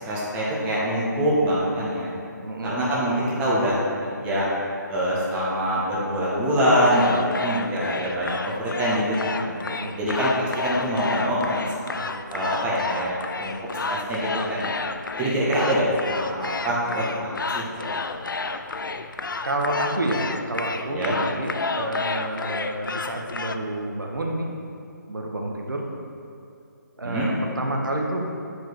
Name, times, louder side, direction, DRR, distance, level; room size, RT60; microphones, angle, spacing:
voice 1, 0.0-2.1 2.6-4.5 4.9-9.5 10.0-11.8 12.3-13.5 13.9-14.8 15.2-18.2 20.9-21.2 27.0-27.3, equal, 10° right, -7 dB, 1.4 m, -24 dB
voice 2, 2.4-2.7 9.6-9.9 19.4-24.5 25.1-25.8 27.0-28.6, right 1 dB, 80° right, 0 dB, 1.4 m, -29 dB
sound 1, 6.8-23.6, left 4 dB, 85° left, 0.5 m, -31 dB
9.2 x 5.0 x 4.7 m, 2.6 s
figure-of-eight pair, 160°, 11 cm